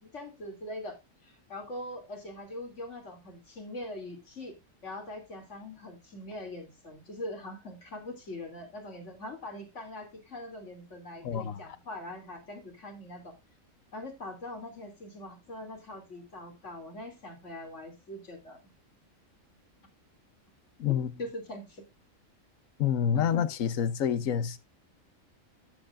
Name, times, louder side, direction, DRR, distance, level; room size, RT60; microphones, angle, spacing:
voice 1, 0.0-4.5 4.8-13.3 13.9-18.6 21.2-21.8 23.1-23.3, left 1 dB, 65° left, 3.1 m, -42 dB
voice 2, 11.2-11.6 20.8-21.1 22.8-24.6, left 8 dB, 85° left, 1.2 m, -28 dB
12.5 x 7.8 x 2.5 m
omnidirectional pair, 1.4 m